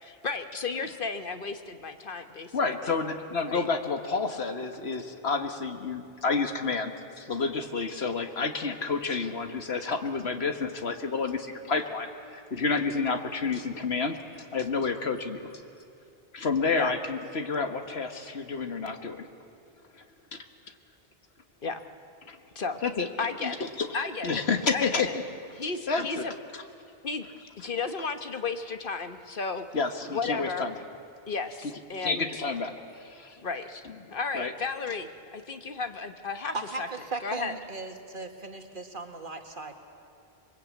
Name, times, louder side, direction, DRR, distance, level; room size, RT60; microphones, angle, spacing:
voice 1, 0.0-2.5 2.8-2.9 3.5-3.6 16.8-16.9 21.6-21.8 22.5-22.8 23.2-23.6 23.9-24.4 24.7-25.1 25.5-26.3 27.0-29.7 30.1-30.7 31.3-32.4 33.4-33.8 34.1-36.9 37.2-37.5, left 4 dB, 55° left, 8 dB, 1.3 m, -34 dB
voice 2, 2.5-6.9 7.2-15.6 16.3-19.2 19.9-20.0 20.3-20.4 22.3-22.4 22.8-23.1 23.4-25.2 25.9-26.3 29.7-30.7 32.0-33.4 34.3-34.5, left 4 dB, 80° left, 6 dB, 1.7 m, -30 dB
voice 3, 36.5-39.7, right 3 dB, 55° right, 4 dB, 1.9 m, -37 dB
26.5 x 22.0 x 8.4 m, 2.5 s
omnidirectional pair, 1.1 m